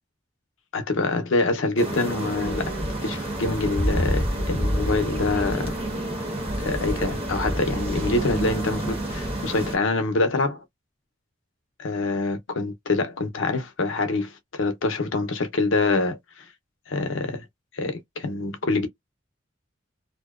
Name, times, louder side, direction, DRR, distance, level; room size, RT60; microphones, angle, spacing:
voice 1, 0.7-5.8 6.6-10.6 11.8-16.4 16.9-17.4 17.7-18.9, left 3 dB, 90° left, 0.6 m, -25 dB
sound 1, 1.8-9.8, equal, 30° right, 1.0 m, -28 dB
2.6 x 2.1 x 2.3 m
head